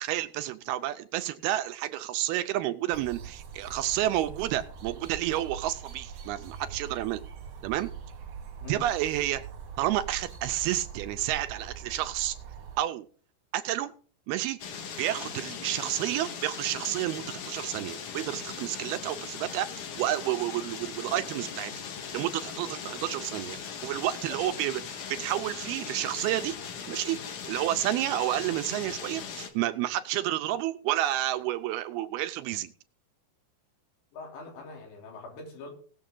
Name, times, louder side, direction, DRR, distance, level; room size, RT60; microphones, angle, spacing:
voice 1, 0.0-7.2 7.6-7.9 8.7-9.4 9.8-12.4 12.8-13.1 13.5-13.9 14.3-14.6 15.0-21.7 22.1-23.6 23.8-26.6 26.9-27.2 27.5-32.7, right 14 dB, 80° right, 10 dB, 2.4 m, -30 dB
sound 1, 2.9-12.8, right 6 dB, 60° right, 1.7 m, -43 dB
sound 2, 14.6-29.5, left 7 dB, 60° left, 2.5 m, -39 dB
voice 2, 34.1-35.7, left 3 dB, 90° left, 1 dB, 5.4 m, -43 dB
18.5 x 7.2 x 3.8 m, 0.42 s
omnidirectional pair, 4.8 m